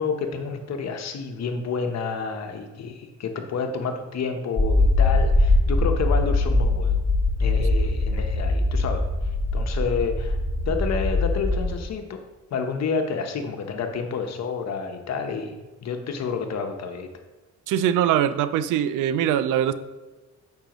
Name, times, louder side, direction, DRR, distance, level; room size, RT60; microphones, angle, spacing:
voice 1, 0.0-7.0 7.4-9.0 9.5-10.4 10.7-12.2 12.5-15.6 15.8-17.1, left 5 dB, 60° left, 5 dB, 1.0 m, -29 dB
sound 1, 4.6-11.7, left 2 dB, 20° left, 1.1 m, -22 dB
voice 2, 17.7-19.7, right 10 dB, 90° right, 13 dB, 0.5 m, -22 dB
8.9 x 5.7 x 3.0 m, 1.2 s
cardioid pair, 90°, 30 cm